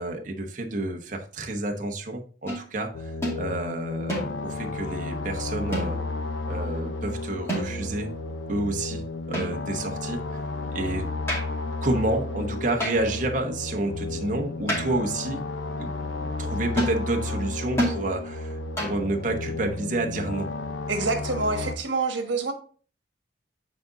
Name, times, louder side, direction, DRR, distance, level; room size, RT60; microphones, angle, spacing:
voice 1, 0.0-6.0 6.4-8.1 8.5-10.4 10.7-11.1 11.8-15.4 15.8-15.9 16.4-20.5, right 2 dB, 45° right, 3 dB, 1.0 m, -29 dB
sound 1, 2.5-2.7 3.2-3.4 4.1-4.6 5.7-6.2 7.5-8.0 9.3-9.9 11.3-11.6 12.8-13.2 14.7-15.1 16.8-17.0 17.8-18.1 18.8-19.1, equal, 15° left, 2.3 m, -30 dB
sound 2, 2.9-21.8, left 2 dB, 85° left, 0.8 m, -33 dB
voice 2, 20.9-22.5, right 3 dB, 80° right, 6 dB, 1.4 m, -27 dB
8.6 x 4.0 x 3.8 m, 0.41 s
head